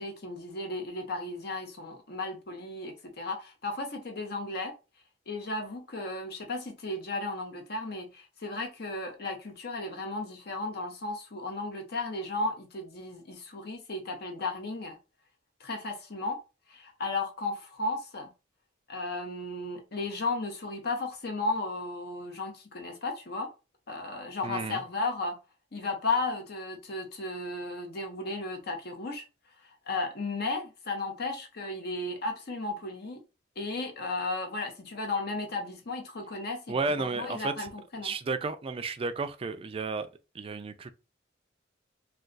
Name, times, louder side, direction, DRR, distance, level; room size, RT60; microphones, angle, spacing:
voice 1, 0.0-4.7 5.3-15.0 15.6-16.4 16.7-18.3 18.9-23.5 23.9-25.4 25.7-29.2 29.9-33.2 33.6-38.1, left 2 dB, 55° left, 0.8 m, -34 dB
voice 2, 24.4-24.8 36.7-37.5 38.0-40.1 40.3-40.9, right 4 dB, 30° right, 0.3 m, -32 dB
2.3 x 2.3 x 3.8 m
head